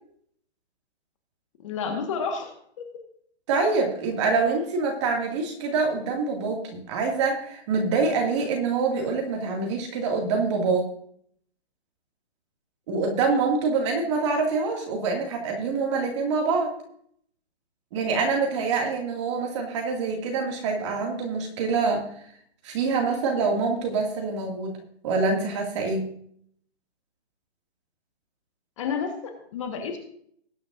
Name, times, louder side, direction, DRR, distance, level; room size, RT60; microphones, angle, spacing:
voice 1, 1.6-2.8 28.8-30.0, left 5 dB, 30° left, 4 dB, 1.5 m, -31 dB
voice 2, 3.5-10.9 12.9-16.7 17.9-22.1 22.6-24.8 25.0-26.1, right 4 dB, 25° right, 1 dB, 2.2 m, -25 dB
20.0 x 9.8 x 2.6 m, 0.65 s
hypercardioid pair, 165°, 33 cm